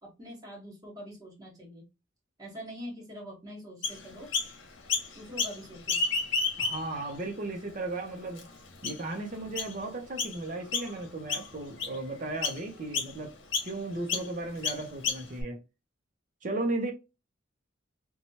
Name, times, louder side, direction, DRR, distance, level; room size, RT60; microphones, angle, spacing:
voice 1, 0.0-1.8 2.4-4.3 5.1-6.0, equal, 20° right, 1.3 m, -44 dB
Chirp tweet, 3.8-4.5 4.9-5.6 5.8-7.0 7.6-7.7 8.4-8.5 8.8-9.1 9.6-9.7 10.2-10.4 10.7-11.0 11.3-12.0 12.4-12.6 12.9-13.1 13.5-13.7 14.1-14.3 14.6-15.4, left 4 dB, 75° left, 0.9 m, -30 dB
voice 2, 6.6-8.5 8.8-13.4 13.6-15.6 16.4-16.9, right 2 dB, 40° right, 0.6 m, -35 dB
3.0 x 2.2 x 2.7 m
head